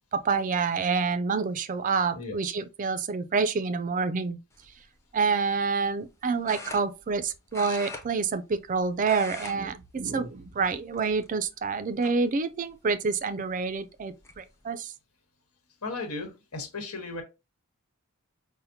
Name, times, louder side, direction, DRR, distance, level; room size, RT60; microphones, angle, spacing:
voice 1, 0.1-4.4 5.1-14.9, right 4 dB, 35° right, 0.3 m, -28 dB
sound 1, 4.5-4.8 6.4-7.2 7.5-8.7 9.0-9.6 9.9-10.1 10.9-11.4 12.0-12.1 13.6-13.7 14.0-14.4, left 3 dB, 15° left, 0.5 m, -41 dB
voice 2, 15.8-17.2, left 3 dB, 90° left, 1.2 m, -35 dB
5.6 x 2.1 x 2.7 m
head